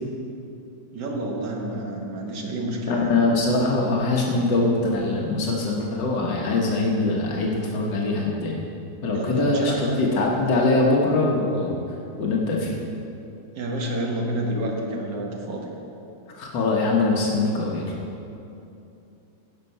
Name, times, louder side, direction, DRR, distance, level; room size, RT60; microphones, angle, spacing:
voice 1, 0.9-3.2 8.9-10.0 13.6-15.7, right 1 dB, 70° right, -1 dB, 2.1 m, -29 dB
voice 2, 2.9-8.6 9.0-11.8 12.2-12.8 16.3-17.9, left 2 dB, 85° left, -2 dB, 1.8 m, -22 dB
16.5 x 5.6 x 5.5 m, 2.8 s
omnidirectional pair, 1.9 m